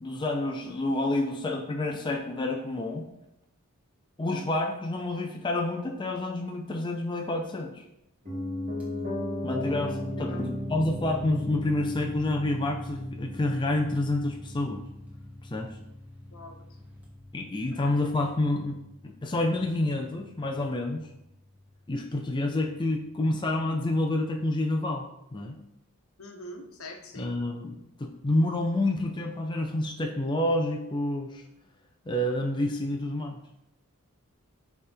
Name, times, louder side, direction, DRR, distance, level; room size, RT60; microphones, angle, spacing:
voice 1, 0.0-3.1 4.2-7.7 9.4-14.8 15.4-15.8 17.3-18.8 19.0-21.1 21.9-25.1 25.3-25.6 27.2-31.4 32.1-33.4, left 1 dB, 20° left, 2 dB, 0.5 m, -28 dB
Piano, 8.2-18.2 18.5-18.6, left 1 dB, 35° right, 2.5 m, -36 dB
sound 1, 8.8-9.0 9.9-17.9, left 1 dB, 5° right, 1.5 m, -58 dB
voice 2, 16.3-16.6 17.7-17.8 26.2-27.3, equal, 70° left, 3 dB, 1.1 m, -43 dB
8.5 x 3.6 x 4.4 m, 0.83 s
head